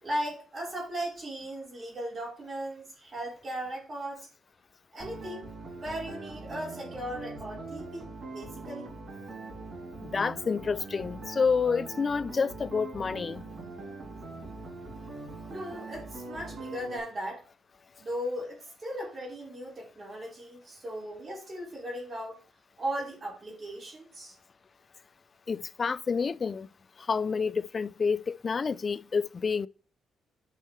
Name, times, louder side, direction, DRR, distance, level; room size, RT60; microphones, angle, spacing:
voice 1, 0.0-4.3 4.9-5.4 5.7-8.9 15.5-17.4 18.0-22.4 22.8-24.4, equal, 40° right, 3.9 m, -37 dB
sound 1, 5.0-17.0, right 3 dB, 55° right, 4.4 m, -42 dB
voice 2, 10.0-13.5 25.5-26.7 27.0-29.7, left 5 dB, 35° left, 0.3 m, -29 dB
9.9 x 5.4 x 3.1 m
cardioid pair, 90°, 0 cm